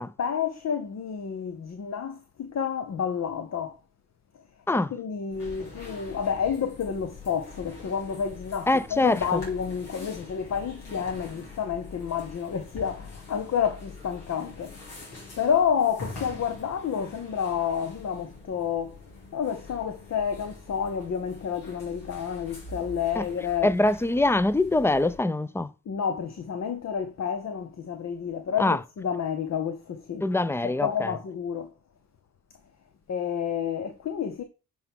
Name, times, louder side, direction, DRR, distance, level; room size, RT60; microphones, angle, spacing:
voice 1, 0.2-3.8 4.7-14.8 15.4-19.0 19.3-23.7 25.9-30.2 30.6-31.7 33.1-34.4, left 7 dB, 55° left, 0.9 m, -29 dB
sound 1, 5.3-25.2, left 3 dB, 85° left, 3.3 m, -44 dB
voice 2, 8.7-9.4 23.2-23.3 23.6-25.7 28.6-28.8 30.2-31.2, left 2 dB, 10° left, 0.5 m, -24 dB
9.8 x 4.7 x 3.6 m
supercardioid pair, 45°, 33 cm